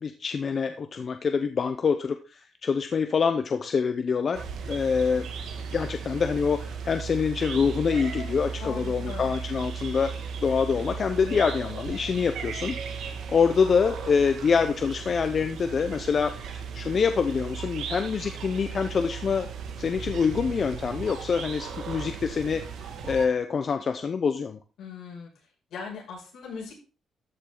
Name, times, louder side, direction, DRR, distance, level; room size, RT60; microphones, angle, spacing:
voice 1, 0.0-5.3 5.7-10.1 10.4-16.4 16.7-19.5 19.8-22.6 23.0-24.6, left 6 dB, 35° left, 8 dB, 0.7 m, -25 dB
sound 1, 4.3-23.3, right 6 dB, 80° right, 2.1 m, -36 dB
voice 2, 8.6-9.3 24.8-25.3 25.7-26.8, left 5 dB, 70° left, -3 dB, 6.5 m, -39 dB
13.5 x 7.4 x 3.9 m, 0.34 s
cardioid pair, 150°, 0 cm